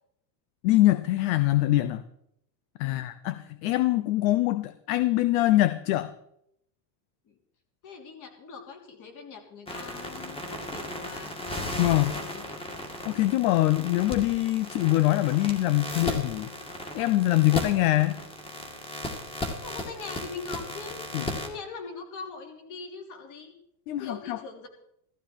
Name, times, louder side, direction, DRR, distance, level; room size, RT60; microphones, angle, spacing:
voice 1, 0.6-2.0 2.8-6.1 11.8-12.1 13.0-16.5 16.9-18.2 21.1-21.2 23.9-24.4, left 16 dB, 60° left, 14 dB, 0.9 m, -24 dB
voice 2, 7.8-11.3 12.1-12.5 19.6-21.0 21.4-23.5 24.0-24.7, left 4 dB, 40° left, 4 dB, 3.3 m, -42 dB
sound 1, 9.7-21.5, left 1 dB, 10° left, 2.3 m, -36 dB
16.0 x 14.5 x 4.5 m, 0.75 s
supercardioid pair, 145°, 49 cm